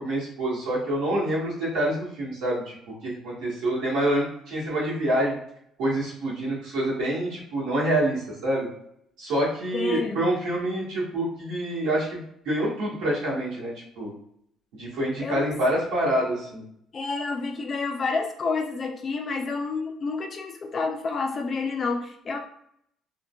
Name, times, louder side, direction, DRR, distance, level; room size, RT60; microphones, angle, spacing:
voice 1, 0.0-5.3 5.8-8.7 9.2-14.1 14.7-16.6, right 1 dB, 80° right, -5 dB, 1.4 m, -27 dB
voice 2, 9.7-10.3 15.2-15.5 16.9-22.4, left 4 dB, 30° left, 3 dB, 0.4 m, -29 dB
3.6 x 2.2 x 2.3 m, 0.71 s
cardioid pair, 175°, 0 cm